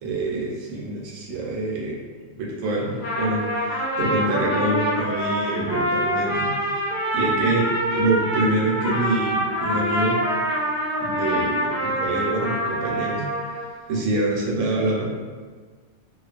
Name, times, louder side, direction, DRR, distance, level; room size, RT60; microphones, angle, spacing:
voice 1, 0.0-2.0 2.3-10.2 11.0-13.2 13.9-15.1, right 2 dB, 85° right, -3 dB, 1.0 m, -26 dB
Trumpet, 2.8-13.7, equal, 50° left, 0.8 m, -25 dB
2.3 x 2.3 x 2.4 m, 1.5 s
omnidirectional pair, 1.3 m